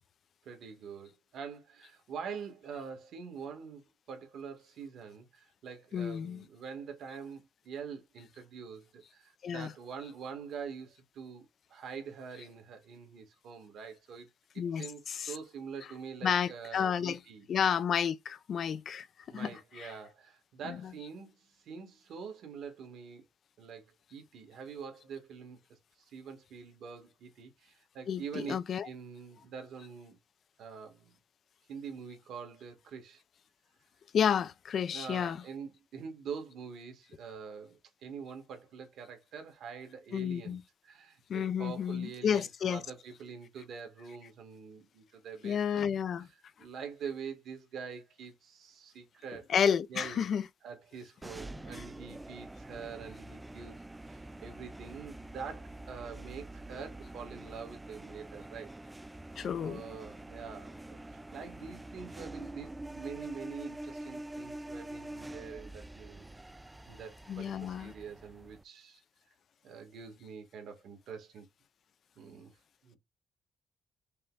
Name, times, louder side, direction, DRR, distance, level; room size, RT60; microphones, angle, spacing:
voice 1, 0.4-14.3 14.8-17.5 19.3-23.2 23.6-25.8 26.1-30.2 30.6-31.2 31.7-33.2 34.9-40.6 40.8-45.8 46.6-49.5 49.9-50.3 50.6-58.7 59.6-66.3 66.9-69.0 69.6-71.5 72.1-72.5 72.8-73.0, right 6 dB, 75° right, 1.8 m, -45 dB
voice 2, 5.9-6.4 9.4-9.7 14.6-15.3 16.2-17.2 17.5-19.5 19.8-19.9 20.6-20.9 28.1-28.9 34.1-35.4 40.1-40.6 41.3-42.8 45.4-46.3 49.5-50.5 59.4-59.8 67.3-67.9, left 8 dB, 60° left, 0.4 m, -31 dB
sound 1, 51.2-68.6, right 1 dB, 15° right, 0.3 m, -46 dB
5.4 x 2.2 x 3.9 m
cardioid pair, 90°, 0 cm